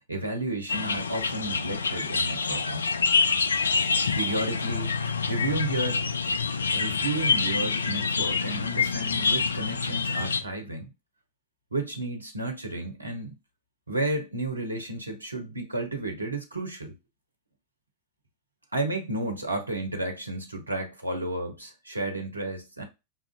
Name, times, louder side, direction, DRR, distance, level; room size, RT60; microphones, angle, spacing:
voice 1, 0.1-2.8 4.2-6.0 6.7-10.9 11.7-13.4 13.9-16.9 18.7-22.8, right 2 dB, 85° right, 0.8 m, -32 dB
sound 1, 0.7-10.4, left 5 dB, 75° left, 0.3 m, -26 dB
5.6 x 2.5 x 2.4 m
figure-of-eight pair, 90°, 0 cm